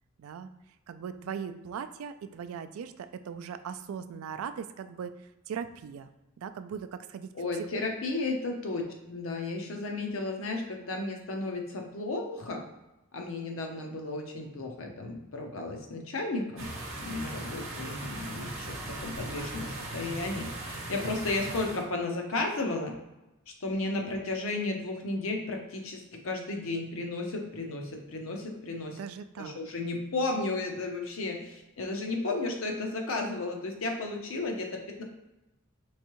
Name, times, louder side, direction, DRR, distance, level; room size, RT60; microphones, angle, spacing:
voice 1, 0.2-0.5 0.9-6.1 6.4-7.3 29.0-29.6, right 7 dB, 90° right, 11 dB, 0.3 m, -39 dB
voice 2, 7.3-12.6 13.1-16.7 17.0-23.0 23.6-29.0 29.4-35.0, left 2 dB, 75° left, 2 dB, 0.7 m, -33 dB
sound 1, 16.6-21.9, right 2 dB, 70° right, 0.9 m, -39 dB
3.5 x 3.1 x 2.9 m, 0.99 s
head